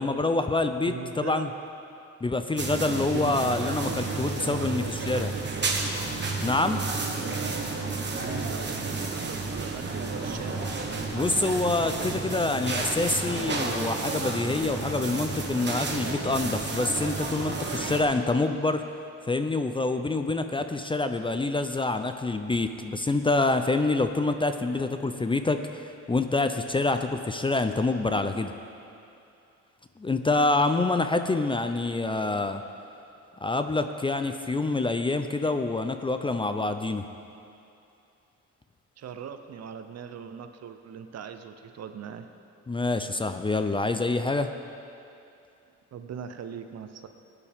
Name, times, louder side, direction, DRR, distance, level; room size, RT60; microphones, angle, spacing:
voice 1, 0.0-1.5 2.2-5.3 6.4-6.8 11.1-18.8 19.3-28.5 30.0-32.6 33.4-37.0 42.7-44.5, left 2 dB, 15° left, 8 dB, 0.5 m, -26 dB
voice 2, 0.8-1.4 3.1-5.8 8.2-10.7 39.0-42.3 45.9-47.1, right 7 dB, 60° right, 8 dB, 0.8 m, -40 dB
sound 1, 2.6-18.0, right 3 dB, 35° right, 1.5 m, -31 dB
16.5 x 9.7 x 3.6 m, 2.6 s
cardioid pair, 90°, 30 cm